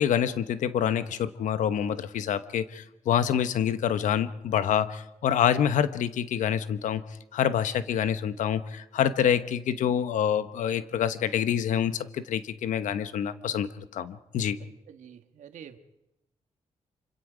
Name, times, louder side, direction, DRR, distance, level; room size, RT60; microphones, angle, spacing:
voice 1, 0.0-7.0 7.3-14.6, left 9 dB, 85° left, 12 dB, 1.0 m, -26 dB
voice 2, 14.6-15.8, right 8 dB, 75° right, 8 dB, 1.5 m, -48 dB
26.5 x 25.0 x 5.1 m, 0.91 s
cardioid pair, 80°, 13 cm